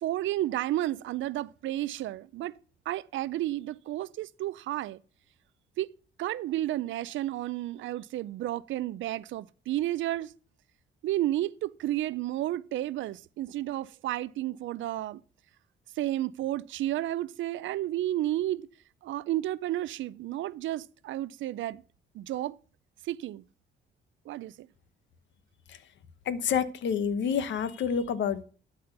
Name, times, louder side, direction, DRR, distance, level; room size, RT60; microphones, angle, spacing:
voice 1, 0.0-2.5 2.9-5.0 5.8-5.9 6.2-10.3 11.0-15.2 16.0-18.7 19.0-21.8 22.1-22.5 23.1-23.4 24.3-24.7, right 14 dB, 75° right, 0.5 m, -32 dB
voice 2, 26.2-28.4, left 7 dB, 70° left, 1.1 m, -28 dB
12.0 x 4.3 x 6.6 m
cardioid pair, 90°, 20 cm